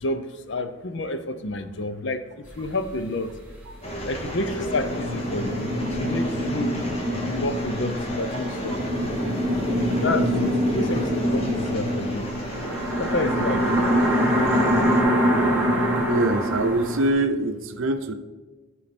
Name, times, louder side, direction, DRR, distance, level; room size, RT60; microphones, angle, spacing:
voice 1, 0.0-2.2 2.6-3.3 4.1-6.7 7.3-8.8 10.0-12.3 13.0-13.7, left 2 dB, 55° left, 10 dB, 0.6 m, -29 dB
sound 1, 2.5-2.6 2.7-2.9 3.4-3.5 4.1-17.1, equal, 5° right, 1.3 m, -24 dB
sound 2, 3.8-15.0, equal, 30° left, 1.2 m, -34 dB
voice 2, 16.1-18.1, right 2 dB, 70° right, 8 dB, 0.6 m, -24 dB
13.5 x 4.7 x 4.2 m, 1.3 s
head